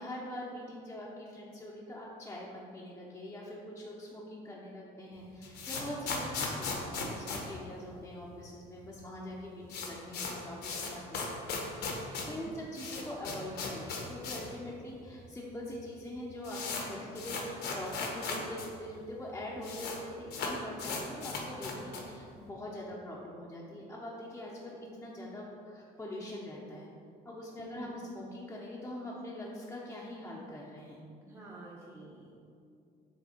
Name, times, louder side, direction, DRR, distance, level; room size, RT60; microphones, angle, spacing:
voice 1, 0.0-26.9 27.2-31.0, left 1 dB, 15° left, -6 dB, 0.7 m, -43 dB
sound 1, 5.2-8.4 8.7-8.8 9.0-9.1 9.4-14.6 14.9-15.0 15.7-15.8 16.0-18.7 18.9-19.0 19.2-20.0 20.3-22.2, left 4 dB, 70° left, 1.0 m, -38 dB
voice 2, 12.3-12.6 27.6-28.0 31.2-32.4, right 2 dB, 15° right, -5 dB, 0.8 m, -49 dB
6.9 x 3.2 x 4.4 m, 2.5 s
cardioid pair, 110°, 17 cm